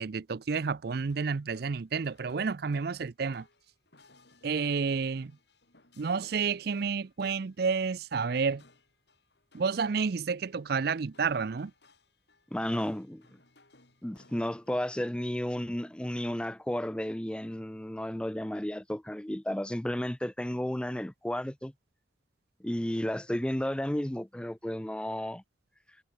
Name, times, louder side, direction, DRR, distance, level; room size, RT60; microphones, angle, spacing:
voice 1, 0.0-3.5 4.4-5.3 6.0-8.6 9.5-11.7, right 5 dB, 55° right, 0.5 m, -30 dB
sound 1, 1.0-14.9, left 2 dB, 60° left, 5.8 m, -63 dB
voice 2, 12.5-13.2 14.0-21.7 22.6-25.4, left 1 dB, 5° left, 0.4 m, -33 dB
head